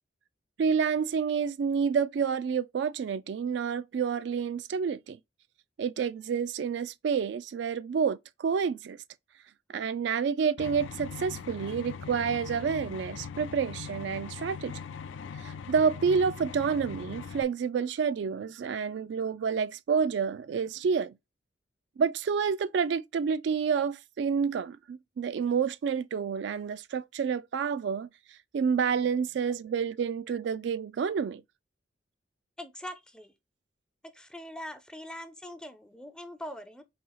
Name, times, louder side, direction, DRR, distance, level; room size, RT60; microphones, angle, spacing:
voice 1, 0.6-5.2 5.8-9.0 9.7-14.7 15.4-21.1 22.0-28.1 28.5-31.4, right 6 dB, 65° right, 0.3 m, -29 dB
sound 1, 10.6-17.4, left 6 dB, 90° left, 0.4 m, -41 dB
voice 2, 32.6-33.3 34.1-36.8, left 1 dB, 5° left, 0.4 m, -42 dB
4.2 x 2.8 x 3.8 m
head